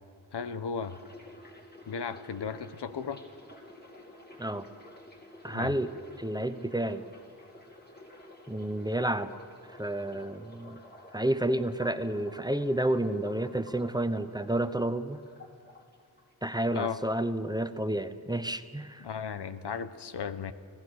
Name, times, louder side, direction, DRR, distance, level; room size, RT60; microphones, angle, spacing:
voice 1, 0.3-1.0 1.9-3.2 5.5-5.7 16.7-17.0 19.0-20.5, left 6 dB, 75° left, 11 dB, 1.0 m, -35 dB
sound 1, 0.8-16.8 17.0-18.0 18.2-18.6, left 1 dB, 25° left, 3.2 m, -52 dB
voice 2, 5.4-5.9 6.2-7.0 8.5-9.3 9.8-10.8 11.1-15.2 16.4-19.0, right 1 dB, 10° right, 11 dB, 0.9 m, -30 dB
26.0 x 16.5 x 6.5 m, 2.2 s
wide cardioid pair, 70°, 41 cm